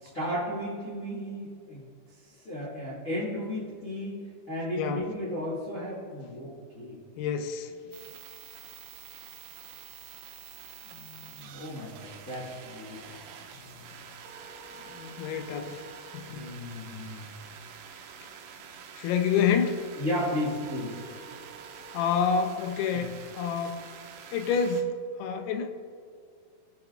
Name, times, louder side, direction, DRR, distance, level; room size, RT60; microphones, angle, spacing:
voice 1, 0.0-1.8 2.4-4.2 4.5-7.0 10.8-11.0 11.3-13.1 13.6-13.9 14.7-15.7 16.3-17.2 20.0-20.9 22.9-23.0, equal, 40° left, -9 dB, 1.1 m, -35 dB
voice 2, 4.8-5.1 7.2-7.7 15.2-15.8 16.1-16.5 19.0-19.9 21.9-23.8 24.3-25.7, left 6 dB, 80° left, 6 dB, 2.5 m, -28 dB
sound 1, 7.9-24.8, right 6 dB, 80° right, 2.1 m, -47 dB
17.5 x 5.9 x 2.5 m, 2.2 s
omnidirectional pair, 4.6 m